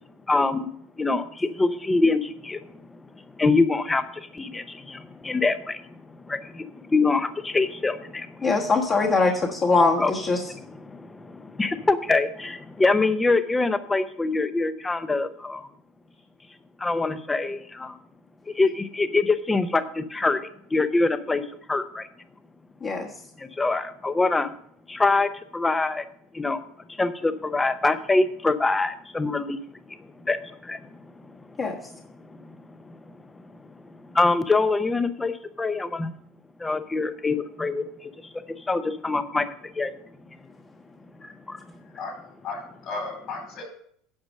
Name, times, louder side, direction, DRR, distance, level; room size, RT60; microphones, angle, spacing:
voice 1, 0.3-0.7 1.0-2.6 3.3-5.8 6.3-8.5 10.0-10.1 10.8-15.7 16.8-17.9 18.6-20.4 20.7-21.4 21.7-22.1 23.4-24.5 24.9-26.1 26.3-26.6 26.9-29.6 29.9-30.0 30.3-30.8 31.4-31.5 32.3-32.5 32.9-33.0 34.1-36.1 36.6-38.1 38.6-39.5 39.7-39.9 41.5-41.6, left 3 dB, 15° left, 11 dB, 0.7 m, -24 dB
voice 2, 8.4-10.5 22.8-23.1 31.6-31.8 41.2-41.3, left 3 dB, 35° left, -1 dB, 1.4 m, -22 dB
voice 3, 42.4-43.6, left 3 dB, 55° left, 2 dB, 4.3 m, -34 dB
9.6 x 5.1 x 6.4 m, 0.65 s
supercardioid pair, 105°, 0 cm